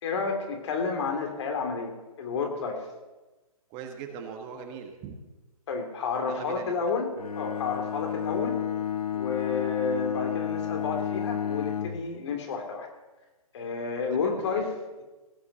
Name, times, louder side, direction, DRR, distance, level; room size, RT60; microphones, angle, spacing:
voice 1, 0.0-2.9 5.7-8.6 9.1-12.9 13.5-15.0, left 4 dB, 50° left, 4 dB, 2.8 m, -31 dB
voice 2, 3.7-5.2 6.3-6.7 14.1-14.7, right 7 dB, 25° right, 4 dB, 1.4 m, -40 dB
Bowed string instrument, 7.2-12.1, left 9 dB, 85° left, 0.9 m, -31 dB
17.0 x 7.1 x 7.1 m, 1.1 s
hypercardioid pair, 140°, 19 cm